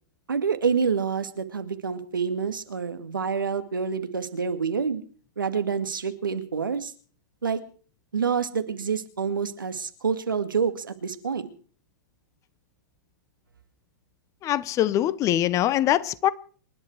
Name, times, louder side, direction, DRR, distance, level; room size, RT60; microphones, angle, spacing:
voice 1, 0.3-5.0 5.4-6.9 7.4-7.6 8.1-11.5, right 6 dB, 80° right, 2.1 m, -27 dB
voice 2, 14.4-16.3, left 12 dB, 30° left, 0.9 m, -23 dB
27.5 x 11.0 x 4.7 m
hypercardioid pair, 110°, 11 cm